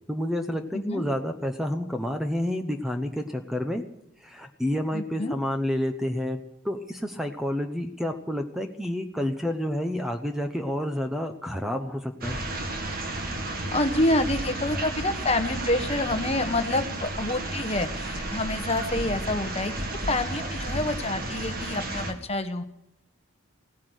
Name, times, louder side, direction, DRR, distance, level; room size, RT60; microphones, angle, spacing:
voice 1, 0.1-3.8 4.2-12.4, left 1 dB, ahead, 6 dB, 0.9 m, -29 dB
voice 2, 4.9-5.3 13.7-19.7 20.1-22.6, left 2 dB, 30° left, 8 dB, 1.1 m, -27 dB
sound 1, 12.2-22.1, right 2 dB, 45° right, 2.1 m, -32 dB
16.5 x 10.5 x 8.1 m, 0.82 s
head